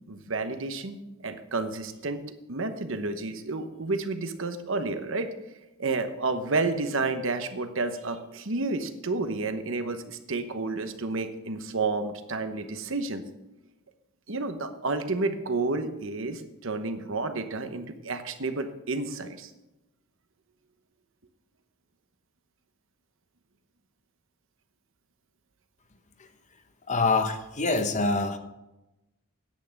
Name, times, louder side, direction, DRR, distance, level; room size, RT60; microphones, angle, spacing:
voice 1, 0.1-2.2 2.5-5.3 5.8-13.2 14.3-19.5, right 3 dB, 60° right, 8 dB, 1.1 m, -30 dB
voice 2, 26.9-28.4, left 3 dB, 35° left, 8 dB, 0.9 m, -25 dB
10.5 x 8.4 x 6.6 m, 0.97 s
head